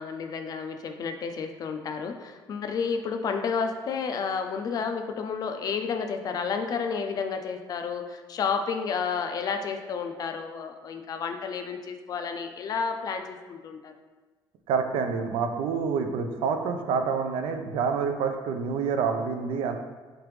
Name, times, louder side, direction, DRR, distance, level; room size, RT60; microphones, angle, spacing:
voice 1, 0.0-13.9, left 5 dB, 45° left, 6 dB, 0.3 m, -31 dB
voice 2, 14.7-19.8, right 6 dB, 90° right, 6 dB, 0.4 m, -27 dB
3.8 x 3.3 x 3.1 m, 1.3 s
cardioid pair, 135°, 9 cm